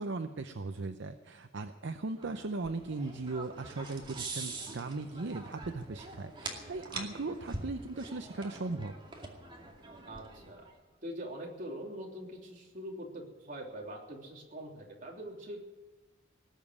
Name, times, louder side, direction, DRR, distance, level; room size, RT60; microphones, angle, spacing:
voice 1, 0.0-8.9, right 3 dB, 65° right, 8 dB, 0.7 m, -38 dB
sound 1, 2.2-10.7, right 3 dB, 25° right, 2.3 m, -44 dB
voice 2, 10.0-10.6 11.0-15.7, equal, 45° right, -1 dB, 3.3 m, -43 dB
19.0 x 7.4 x 9.7 m, 1.2 s
head